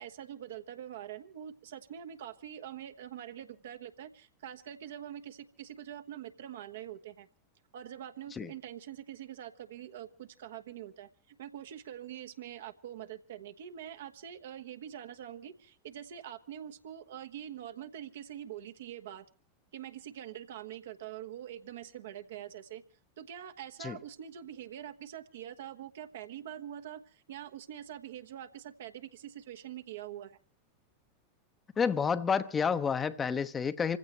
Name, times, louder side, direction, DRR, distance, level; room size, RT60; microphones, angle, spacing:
voice 1, 0.0-7.3 7.7-19.2 19.7-22.8 23.2-30.4, right 10 dB, 65° right, 8 dB, 1.2 m, -44 dB
voice 2, 31.8-34.0, left 6 dB, 20° left, 11 dB, 0.9 m, -29 dB
28.0 x 15.5 x 3.1 m, 0.37 s
figure-of-eight pair, 85°, 0 cm